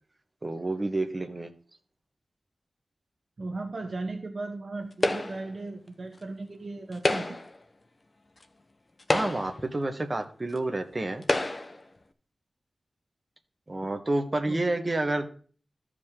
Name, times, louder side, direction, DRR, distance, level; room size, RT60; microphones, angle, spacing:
voice 1, 0.4-1.5 9.1-11.2 13.7-15.3, right 2 dB, 30° right, 5 dB, 1.3 m, -29 dB
voice 2, 3.4-7.4 14.5-14.6, right 3 dB, 50° right, 4 dB, 0.9 m, -36 dB
sound 1, 5.0-5.6 6.9-7.6 8.4-8.5 9.0-9.7 10.6-10.7 11.2-11.8, left 2 dB, 35° left, 0.8 m, -28 dB
14.0 x 5.0 x 3.7 m, 0.43 s
wide cardioid pair, 80°, 0 cm